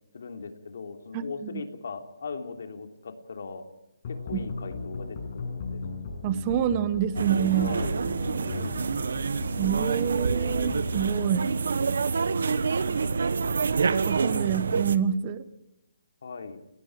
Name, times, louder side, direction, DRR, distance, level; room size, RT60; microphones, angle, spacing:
voice 1, 0.1-3.6 4.1-5.8 7.5-9.3 16.2-16.6, left 4 dB, 50° left, 5 dB, 3.2 m, -39 dB
sound 1, 4.0-11.1, left 3 dB, 25° left, 6.2 m, -37 dB
voice 2, 6.2-7.7 9.6-11.5 13.9-15.4, right 9 dB, 15° right, 14 dB, 0.8 m, -27 dB
sound 2, 7.1-15.0, right 5 dB, 55° right, 1.2 m, -27 dB
30.0 x 19.5 x 4.9 m, 0.88 s
hypercardioid pair, 180°, 0 cm